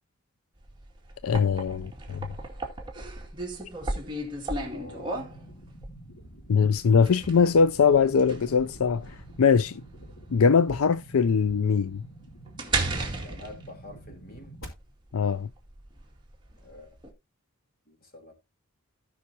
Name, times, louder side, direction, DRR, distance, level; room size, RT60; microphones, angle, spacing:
sound 1, 0.6-17.1, right 2 dB, 20° right, 2.2 m, -36 dB
voice 1, 1.2-2.3 6.5-9.8 10.3-12.0 15.1-15.5, left 6 dB, 80° left, 0.5 m, -22 dB
sound 2, 4.6-14.6, right 1 dB, 65° left, 4.3 m, -48 dB
voice 2, 4.7-5.2 13.2-14.6 16.6-17.0 17.9-18.3, left 1 dB, 40° left, 3.3 m, -47 dB
17.0 x 5.8 x 2.8 m
head